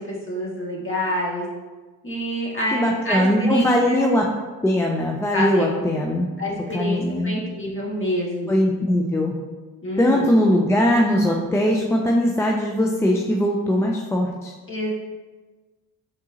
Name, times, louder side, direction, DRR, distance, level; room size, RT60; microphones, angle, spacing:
voice 1, 0.0-1.5 2.0-4.0 5.3-5.8 6.4-8.5 9.8-10.3 14.7-14.9, equal, 25° left, -3 dB, 1.5 m, -27 dB
voice 2, 2.7-4.3 4.6-6.3 6.7-7.3 8.5-9.3 10.0-14.5, equal, 5° left, 0 dB, 0.3 m, -20 dB
4.8 x 3.6 x 2.7 m, 1.3 s
hypercardioid pair, 45°, 44 cm